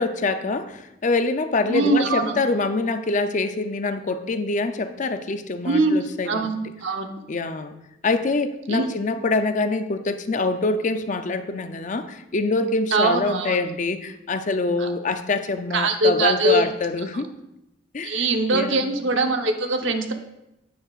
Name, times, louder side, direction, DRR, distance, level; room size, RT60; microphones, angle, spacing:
voice 1, 0.0-6.7 7.3-7.7 8.0-17.3 17.9-18.3 18.5-18.9, left 3 dB, 40° left, 9 dB, 0.5 m, -25 dB
voice 2, 1.7-2.3 5.6-6.0 6.3-6.5 6.8-7.1 8.7-8.9 12.9-13.6 14.8-14.9 15.7-16.7 18.0-20.1, right 2 dB, 75° right, 5 dB, 0.9 m, -22 dB
9.9 x 9.4 x 2.4 m, 0.89 s
head